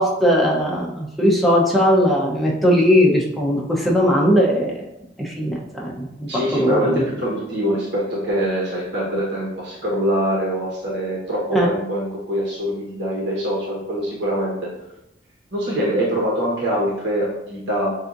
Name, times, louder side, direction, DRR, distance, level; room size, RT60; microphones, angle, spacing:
voice 1, 0.0-4.9 5.2-7.0 11.5-11.7, equal, ahead, -4 dB, 0.9 m, -19 dB
voice 2, 6.3-14.7 15.5-17.9, equal, 65° right, -5 dB, 1.3 m, -24 dB
7.3 x 2.7 x 2.6 m, 0.86 s
head